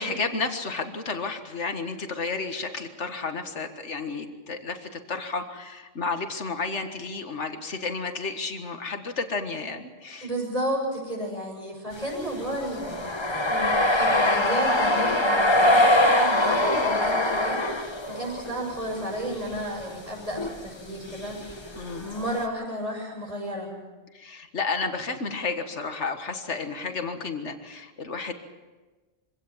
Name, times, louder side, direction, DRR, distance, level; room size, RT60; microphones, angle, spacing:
voice 1, 0.0-10.3 21.8-22.1 24.1-28.3, left 4 dB, 80° left, 7 dB, 2.0 m, -32 dB
voice 2, 10.2-21.7 22.0-23.7, equal, 35° right, -5 dB, 7.6 m, -32 dB
sound 1, 12.0-18.6 18.9-19.6 19.9-20.0 20.4-20.6 21.2-22.5, left 1 dB, 25° left, 1.3 m, -23 dB
24.5 x 17.0 x 7.3 m, 1.3 s
omnidirectional pair, 1.2 m